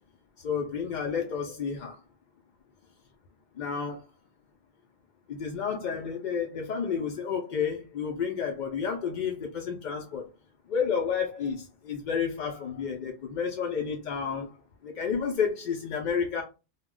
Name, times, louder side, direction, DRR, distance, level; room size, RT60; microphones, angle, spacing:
voice 1, 0.4-2.0 3.6-4.0 5.3-10.2 10.7-14.5 14.8-16.4, left 6 dB, 65° left, 0.4 m, -31 dB
2.2 x 2.1 x 3.6 m
omnidirectional pair, 1.3 m